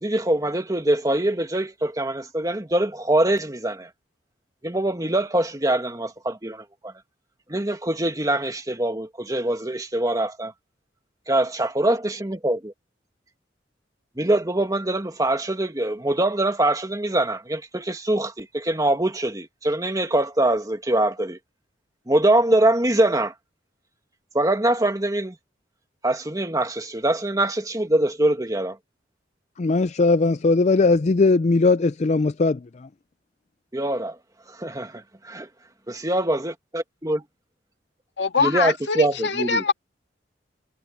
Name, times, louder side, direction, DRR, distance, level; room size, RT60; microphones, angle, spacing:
voice 1, 0.0-3.9 4.6-6.9 7.5-10.5 11.3-12.6 14.2-21.4 22.1-23.3 24.3-25.4 26.0-28.8 33.7-34.2 34.6-35.5 35.9-37.2 38.4-39.6, right 1 dB, 20° right, 1.9 m, -23 dB
voice 2, 29.6-32.9, left 3 dB, 40° left, 0.4 m, -19 dB
voice 3, 38.2-39.7, left 5 dB, 80° left, 1.9 m, -23 dB
head